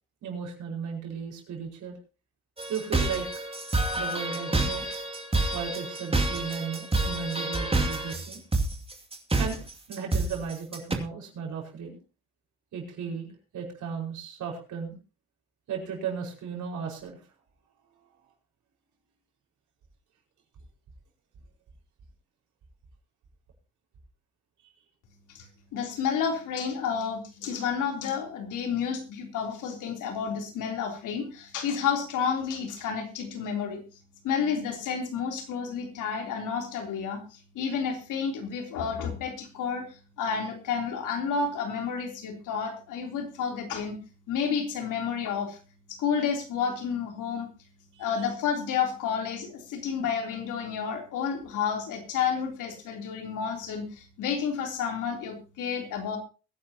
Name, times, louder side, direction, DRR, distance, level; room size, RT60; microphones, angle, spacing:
voice 1, 0.2-2.0 2.7-3.4 3.9-4.9 5.5-8.4 9.4-9.6 9.9-12.0 12.7-15.0 15.7-17.2 47.9-48.1, right 6 dB, 75° right, 1 dB, 5.2 m, -35 dB
sound 1, 2.6-10.9, right 2 dB, 20° right, 2.5 m, -28 dB
voice 2, 25.7-33.8 34.2-39.9 40.2-44.0 44.3-45.6 45.9-47.5 48.0-56.2, left 6 dB, 85° left, 3 dB, 3.5 m, -30 dB
22.0 x 10.5 x 2.9 m, 0.32 s
cardioid pair, 90°, 30 cm